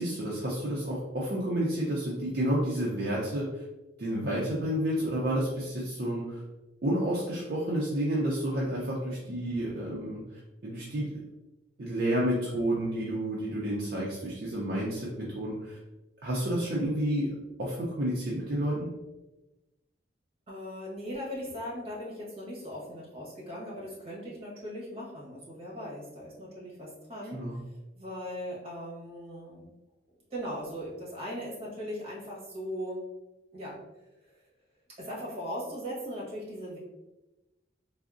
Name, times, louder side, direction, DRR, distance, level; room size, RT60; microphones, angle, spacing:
voice 1, 0.0-3.6 4.0-6.4 6.8-10.2 10.6-11.2 11.8-15.8 16.2-17.3 17.6-18.9 27.3-27.6, right 1 dB, 55° right, -5 dB, 0.5 m, -30 dB
voice 2, 20.5-27.5 27.9-29.7 30.3-33.0 33.5-33.8 35.0-36.8, equal, 30° right, -6 dB, 1.0 m, -39 dB
3.5 x 2.0 x 2.4 m, 1.0 s
head